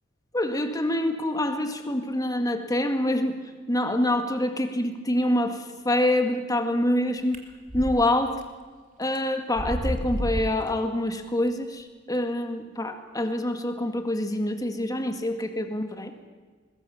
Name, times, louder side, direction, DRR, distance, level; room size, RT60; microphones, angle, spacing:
voice 1, 0.3-3.4 3.7-7.4 7.7-8.4 9.0-16.1, left 1 dB, 20° left, 6 dB, 2.0 m, -26 dB
sound 1, 7.3-8.0 8.4-8.5 9.2-9.3 9.5-10.7, equal, 45° right, 2.8 m, -30 dB
22.0 x 21.0 x 7.1 m, 1.5 s
head